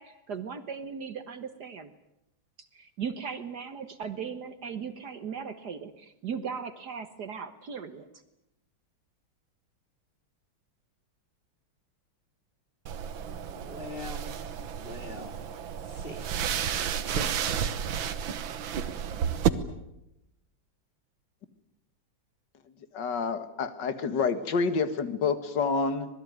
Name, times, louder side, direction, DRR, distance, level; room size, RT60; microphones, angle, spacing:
voice 1, 0.0-1.9 2.6-8.2, right 6 dB, 55° right, 10 dB, 1.7 m, -38 dB
sound 1, 12.9-19.5, right 8 dB, 75° right, 1.9 m, -31 dB
voice 2, 13.4-15.5 15.8-16.3 17.1-17.4, left 2 dB, 25° left, 5 dB, 3.0 m, -43 dB
voice 3, 22.9-26.1, left 5 dB, 60° left, 11 dB, 2.3 m, -28 dB
26.0 x 20.0 x 9.5 m, 0.87 s
omnidirectional pair, 2.2 m